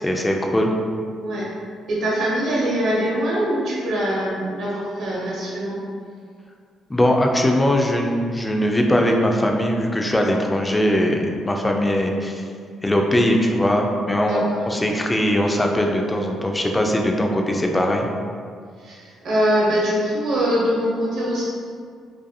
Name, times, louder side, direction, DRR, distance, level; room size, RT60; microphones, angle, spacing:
voice 1, 0.0-0.7 6.9-12.4 12.8-18.1, equal, 15° left, 1 dB, 0.3 m, -20 dB
voice 2, 1.9-5.8 14.3-14.6 18.8-21.4, equal, 65° right, -6 dB, 0.8 m, -23 dB
2.5 x 2.4 x 2.3 m, 2.1 s
supercardioid pair, 75°, 0 cm